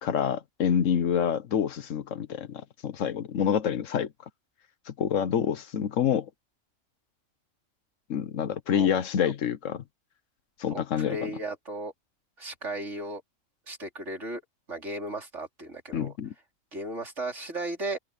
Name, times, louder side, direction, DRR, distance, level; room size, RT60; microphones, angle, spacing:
voice 1, 0.0-4.1 4.9-6.3 8.1-9.8 10.6-11.3 15.9-16.3, left 8 dB, 70° left, 1.2 m, -27 dB
voice 2, 10.7-11.9 12.4-13.2 13.7-14.4 14.7-16.1 16.7-18.0, right 1 dB, 60° right, 4.7 m, -35 dB
omnidirectional pair, 1.4 m